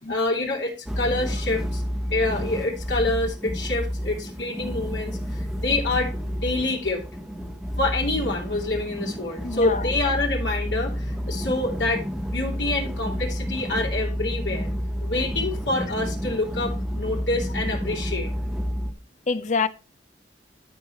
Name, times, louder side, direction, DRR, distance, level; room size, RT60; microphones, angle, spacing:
voice 1, 0.1-1.8 2.1-7.0 7.8-14.7 15.0-18.3, left 2 dB, 90° left, 3.1 m, -27 dB
sound 1, 0.9-18.9, equal, 5° right, 0.9 m, -30 dB
voice 2, 9.4-9.9 19.3-19.7, left 4 dB, 40° left, 0.6 m, -25 dB
12.0 x 5.3 x 4.6 m
head